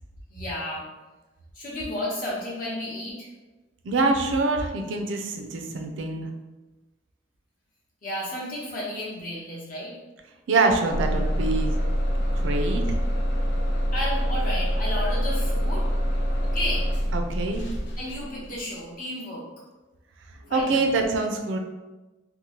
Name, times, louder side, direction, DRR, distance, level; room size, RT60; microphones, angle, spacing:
voice 1, 0.3-0.8 1.5-3.3 8.0-9.9 13.9-15.9 16.4-16.9 18.0-19.5 20.5-20.9, left 1 dB, 50° left, -5 dB, 0.9 m, -32 dB
voice 2, 3.8-6.3 10.5-11.7 12.3-13.0 17.1-17.7 20.3-21.6, right 3 dB, 85° right, 4 dB, 0.4 m, -25 dB
Bus / Engine starting, 10.9-18.7, equal, 65° left, 0.5 m, -25 dB
2.8 x 2.1 x 2.8 m, 1.1 s
head